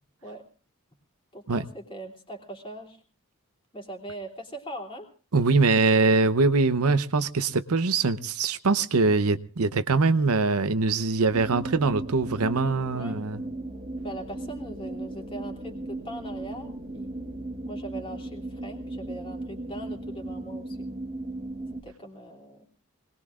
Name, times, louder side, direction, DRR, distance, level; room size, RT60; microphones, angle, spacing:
voice 1, 1.3-3.0 3.7-5.1 12.9-13.2 14.0-17.1 17.7-20.9 21.8-22.6, right 1 dB, 25° left, 3.0 m, -41 dB
voice 2, 5.3-13.4, right 3 dB, 75° right, 0.7 m, -23 dB
sound 1, 11.3-21.8, right 2 dB, 30° right, 1.5 m, -36 dB
25.5 x 20.0 x 2.4 m
head